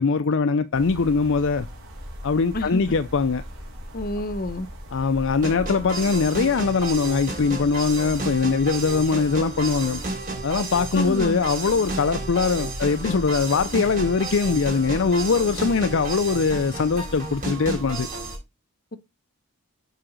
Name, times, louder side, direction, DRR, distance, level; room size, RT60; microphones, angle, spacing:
voice 1, 0.0-1.7 2.2-3.4 4.9-10.0 10.4-18.1, left 4 dB, 55° left, 0.5 m, -22 dB
sound 1, 0.7-18.4, equal, 60° right, 3.9 m, -39 dB
voice 2, 3.9-4.7 10.9-11.4, left 1 dB, 40° left, 0.9 m, -28 dB
sound 2, 5.4-18.4, right 2 dB, 40° right, 5.1 m, -32 dB
7.7 x 4.8 x 6.2 m
head